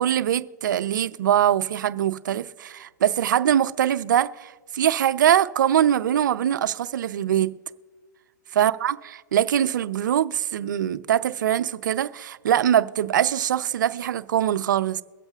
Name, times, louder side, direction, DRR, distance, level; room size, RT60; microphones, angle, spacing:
voice 1, 0.0-7.5 8.5-15.0, right 10 dB, 75° right, 0.5 m, -23 dB
23.0 x 8.0 x 2.4 m
hypercardioid pair, 125°, 10 cm